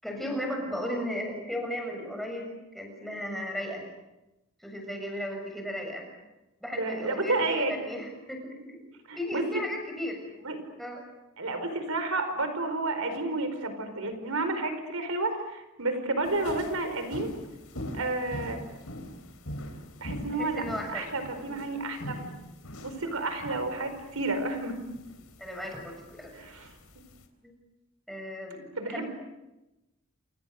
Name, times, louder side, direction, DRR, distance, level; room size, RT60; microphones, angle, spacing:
voice 1, 0.0-3.9 4.6-6.1 6.6-8.8 9.2-10.2 10.8-11.0 20.3-21.0 21.5-21.6 25.4-26.3 27.4-27.5 28.1-29.1, left 1 dB, ahead, 2 dB, 6.9 m, -35 dB
voice 2, 6.7-7.8 9.1-9.6 10.4-10.7 11.4-17.3 17.9-18.6 20.0-20.6 20.9-22.1 22.8-24.8 26.3-27.0 28.8-29.0, right 2 dB, 85° right, 8 dB, 4.8 m, -31 dB
sound 1, 16.2-27.2, equal, 80° left, 4.0 m, -43 dB
29.0 x 28.5 x 6.7 m, 0.98 s
head